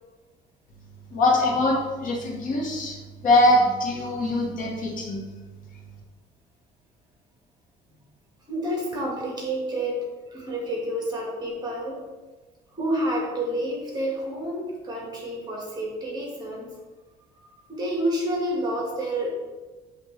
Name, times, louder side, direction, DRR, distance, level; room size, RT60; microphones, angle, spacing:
voice 1, 1.1-2.9 3.2-5.3, left 1 dB, 50° left, -1 dB, 1.5 m, -22 dB
voice 2, 8.5-10.0 10.3-12.1 12.7-16.7 17.4-19.3, right 1 dB, 25° right, -2 dB, 1.8 m, -29 dB
7.9 x 3.6 x 3.3 m, 1.3 s
cardioid pair, 110°, 17 cm